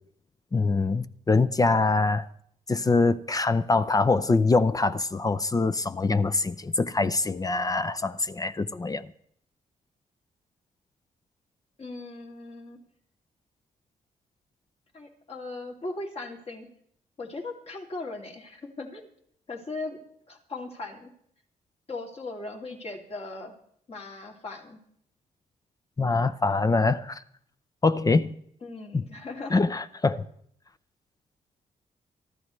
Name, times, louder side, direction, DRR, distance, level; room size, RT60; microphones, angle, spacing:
voice 1, 0.5-2.3 2.7-9.1 26.0-27.2 27.8-28.3 28.9-29.0 29.5-30.3, left 3 dB, 25° left, 0.5 m, -24 dB
voice 2, 11.8-12.8 14.9-16.7 17.2-19.1 19.5-20.0 20.3-21.1 21.9-23.5 23.9-24.8 28.6-29.7, left 2 dB, 45° left, 2.7 m, -38 dB
24.0 x 13.5 x 3.2 m
cardioid pair, 90°, 15 cm